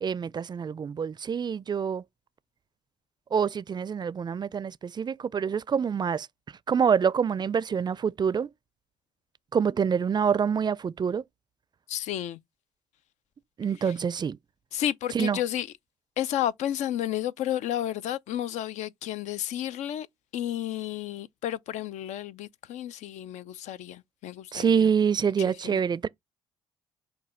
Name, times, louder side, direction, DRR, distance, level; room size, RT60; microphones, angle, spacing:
voice 1, 0.0-2.0 3.3-6.3 6.7-8.5 9.5-11.2 13.6-14.4 15.1-15.4 24.5-26.1, right 7 dB, 35° right, 0.4 m, -26 dB
voice 2, 11.9-12.4 13.8-13.9 14.7-15.7 16.2-20.1 20.3-24.9 25.4-25.8, left 11 dB, 70° left, 0.4 m, -32 dB
6.0 x 2.3 x 3.7 m
hypercardioid pair, 50°, 13 cm